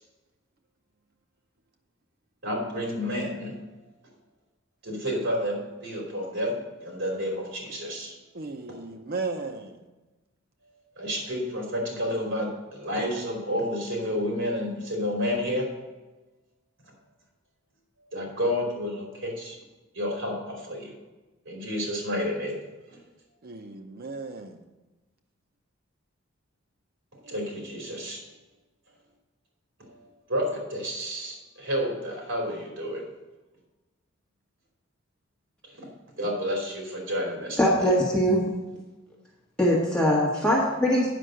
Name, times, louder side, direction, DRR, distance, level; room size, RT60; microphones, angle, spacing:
voice 1, 2.4-3.5 4.8-6.6 6.8-8.1 11.0-15.7 18.1-19.6 19.9-21.0 21.4-22.6 22.9-23.0 27.2-28.2 30.3-33.0 35.7-35.9 36.2-37.9, equal, 65° right, 3.2 m, -30 dB
voice 2, 8.3-9.8 23.4-24.6, right 3 dB, 50° right, 0.7 m, -35 dB
voice 3, 37.6-38.4 39.6-41.1, equal, 5° left, 1.5 m, -22 dB
9.4 x 5.6 x 6.3 m
head